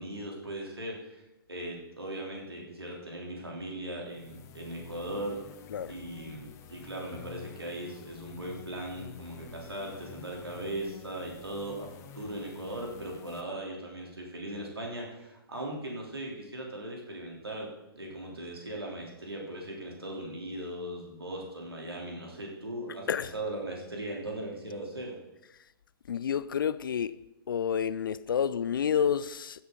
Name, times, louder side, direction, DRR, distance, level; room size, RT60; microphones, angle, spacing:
voice 1, 0.0-5.4 5.9-11.9 12.1-25.2, right 1 dB, 75° right, 3.2 m, -39 dB
sound 1, 4.0-13.4, left 8 dB, 20° left, 0.9 m, -50 dB
voice 2, 26.1-27.1 27.5-29.6, left 8 dB, 60° left, 0.5 m, -29 dB
15.0 x 7.9 x 3.8 m
figure-of-eight pair, 120°, 13 cm